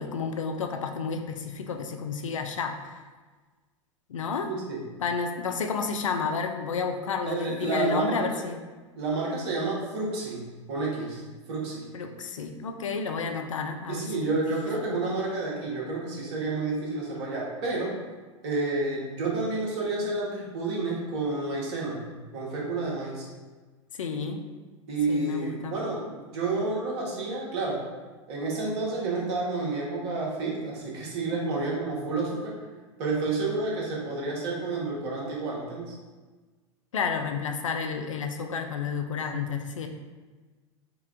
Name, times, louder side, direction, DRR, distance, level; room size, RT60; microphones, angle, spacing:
voice 1, 0.0-3.0 4.1-4.5 5.0-8.6 11.9-14.4 14.9-15.0 23.9-24.4 25.1-25.8 36.9-39.9, left 5 dB, 85° left, 6 dB, 0.5 m, -31 dB
voice 2, 4.5-4.8 7.3-8.4 8.9-11.9 13.9-17.9 18.4-22.1 22.3-23.3 24.9-27.9 28.3-32.6 33.0-35.9, right 3 dB, 60° right, -3 dB, 1.5 m, -30 dB
4.9 x 2.4 x 3.6 m, 1.3 s
hypercardioid pair, 95°, 16 cm